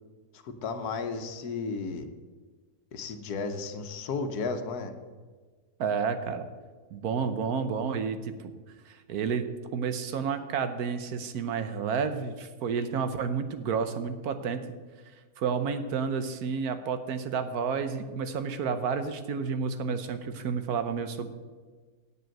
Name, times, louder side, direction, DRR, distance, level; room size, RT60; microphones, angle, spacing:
voice 1, 0.4-2.1 2.9-4.9, left 4 dB, 80° left, 7 dB, 1.4 m, -33 dB
voice 2, 5.8-6.5 6.9-8.5 8.9-9.5 9.7-14.6 15.4-21.3, right 6 dB, 75° right, 10 dB, 1.4 m, -30 dB
8.3 x 7.6 x 7.7 m, 1.4 s
omnidirectional pair, 1.6 m